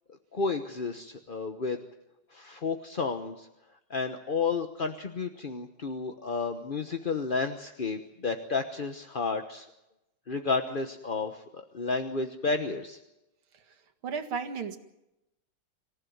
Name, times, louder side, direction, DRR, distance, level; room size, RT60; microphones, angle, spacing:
voice 1, 0.3-1.8 2.3-3.5 3.9-9.7 10.3-13.0, left 4 dB, 35° left, 6 dB, 0.9 m, -31 dB
voice 2, 14.0-14.8, right 6 dB, 80° right, 7 dB, 2.7 m, -33 dB
26.0 x 15.5 x 9.4 m, 0.91 s
omnidirectional pair, 2.3 m